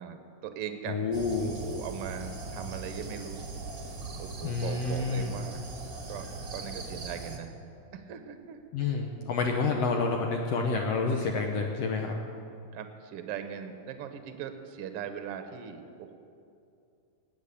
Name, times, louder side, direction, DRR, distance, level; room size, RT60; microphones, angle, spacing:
voice 1, 0.0-1.0 1.5-3.5 4.2-5.7 6.1-7.6 7.9-8.6 12.7-16.2, right 8 dB, 65° right, 8 dB, 1.5 m, -40 dB
voice 2, 0.9-1.5 4.4-5.3 8.7-12.2, left 4 dB, 70° left, 2 dB, 1.6 m, -29 dB
sound 1, 1.1-7.4, right 3 dB, 40° right, 1.2 m, -40 dB
18.5 x 8.5 x 6.9 m, 2.6 s
omnidirectional pair, 3.8 m